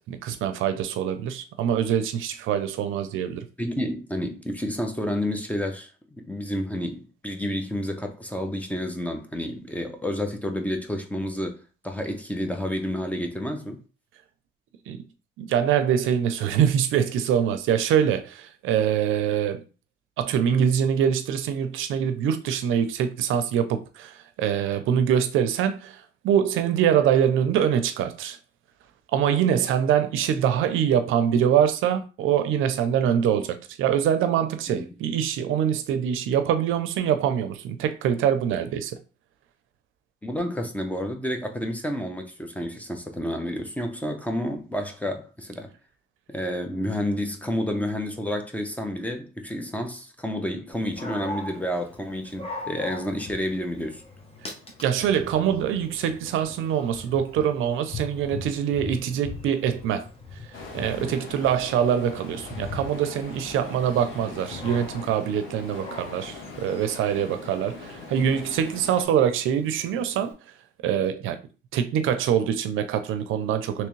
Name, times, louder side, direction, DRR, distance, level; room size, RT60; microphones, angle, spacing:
voice 1, 0.0-3.5 14.9-15.0 15.4-19.6 20.2-28.4 29.1-39.0 54.8-60.1 60.7-70.3 70.8-71.4 71.7-73.9, right 9 dB, 85° right, 0.5 m, -24 dB
voice 2, 3.6-11.6 11.8-13.8 34.7-34.9 40.2-45.7 46.3-54.0 61.0-61.2, left 1 dB, 5° left, 0.7 m, -30 dB
Dog, 50.7-70.3, left 3 dB, 30° left, 1.0 m, -41 dB
sound 1, 60.5-69.0, left 4 dB, 90° left, 1.0 m, -41 dB
3.4 x 3.0 x 3.1 m
cardioid pair, 90°, 20 cm